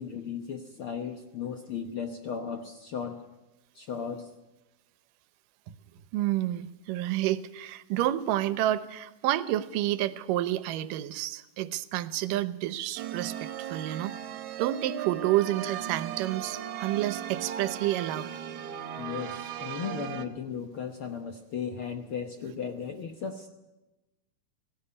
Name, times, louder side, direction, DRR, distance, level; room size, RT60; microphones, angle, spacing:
voice 1, 0.0-3.2 3.7-4.3 19.0-23.5, left 6 dB, 65° left, 6 dB, 1.4 m, -36 dB
voice 2, 6.1-14.1 14.6-18.3, right 14 dB, 85° right, 15 dB, 2.4 m, -29 dB
sound 1, 13.0-20.3, right 10 dB, 70° right, 2.4 m, -37 dB
17.5 x 16.5 x 9.8 m, 1.0 s
omnidirectional pair, 3.8 m